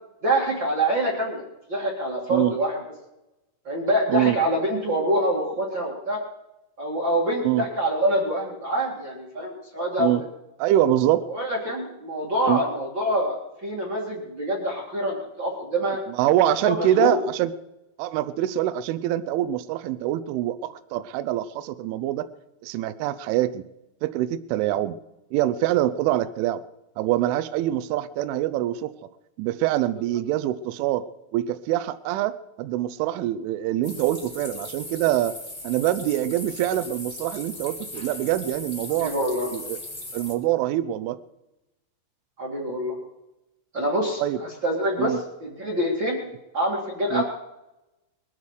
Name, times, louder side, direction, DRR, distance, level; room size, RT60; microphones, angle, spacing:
voice 1, 0.2-1.4 1.7-2.8 3.6-6.2 6.8-10.1 11.3-16.0 16.6-17.2 39.0-39.5 42.4-43.0 43.7-46.2 46.5-47.2, equal, 40° right, -2 dB, 1.6 m, -25 dB
voice 2, 10.6-11.3 12.5-12.6 16.1-17.5 18.0-22.3 22.6-23.6 24.0-25.0 25.3-26.6 27.0-28.9 29.4-31.0 31.3-35.4 35.6-39.1 39.5-39.8 40.1-41.2 44.2-44.4 45.0-45.2 47.1-47.2, right 13 dB, 80° right, 13 dB, 3.1 m, -24 dB
sound 1, 33.8-40.3, left 2 dB, 20° left, 0.9 m, -38 dB
21.5 x 12.5 x 4.9 m, 0.94 s
omnidirectional pair, 5.7 m